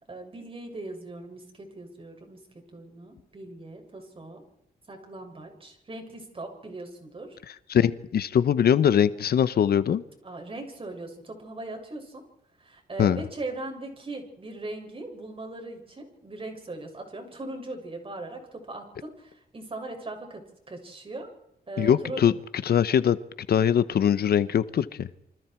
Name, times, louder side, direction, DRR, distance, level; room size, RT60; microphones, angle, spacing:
voice 1, 0.0-2.4 2.7-4.4 4.9-7.4 10.2-12.2 12.6-21.3 21.7-22.2, right 2 dB, 35° right, 3 dB, 6.7 m, -39 dB
voice 2, 7.5-10.0 13.0-13.2 21.8-22.3 22.6-23.2 23.5-25.1, left 9 dB, 75° left, 14 dB, 1.1 m, -22 dB
29.0 x 24.5 x 4.6 m, 0.78 s
cardioid pair, 100°, 16 cm